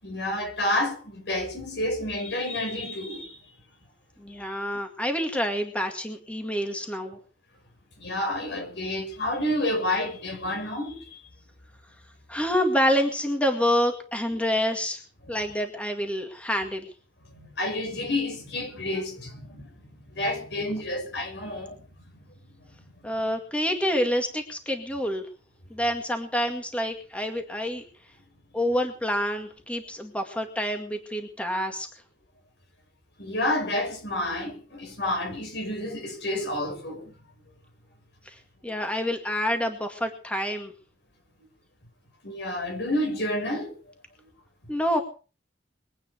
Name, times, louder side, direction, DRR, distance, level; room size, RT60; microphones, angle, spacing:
voice 1, 0.0-3.4 8.0-11.2 17.3-19.7 20.1-21.8 33.2-37.1 42.2-43.7, left 1 dB, 70° left, 6.2 m, -29 dB
voice 2, 4.2-7.2 12.3-15.0 15.3-16.9 23.0-25.2 25.7-27.8 28.5-31.9 38.3-38.4 38.6-40.7 44.7-45.0, equal, 5° left, 2.1 m, -27 dB
23.0 x 9.2 x 6.5 m
head